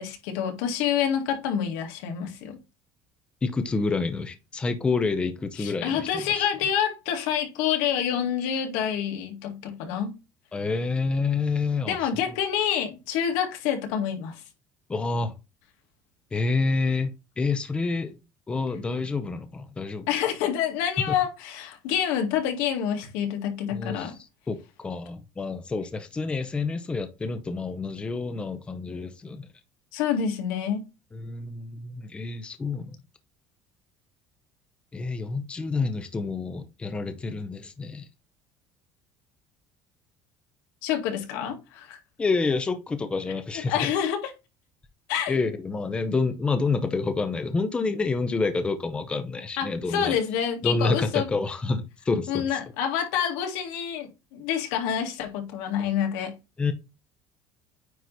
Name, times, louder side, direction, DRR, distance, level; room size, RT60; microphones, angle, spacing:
voice 1, 0.0-2.6 5.6-10.1 11.9-14.4 20.1-24.1 29.9-30.8 40.8-42.0 43.7-44.3 45.1-45.4 49.6-51.3 52.3-56.3, left 9 dB, 90° left, 2.0 m, -27 dB
voice 2, 3.4-6.4 10.5-12.2 14.9-15.3 16.3-18.2 18.5-20.1 21.0-21.2 23.7-24.1 24.5-29.5 31.1-33.0 34.9-38.1 42.2-43.9 45.3-50.2 50.6-52.5 56.6-56.7, left 3 dB, 15° left, 0.7 m, -28 dB
9.2 x 3.1 x 4.0 m
cardioid pair, 150°, 7 cm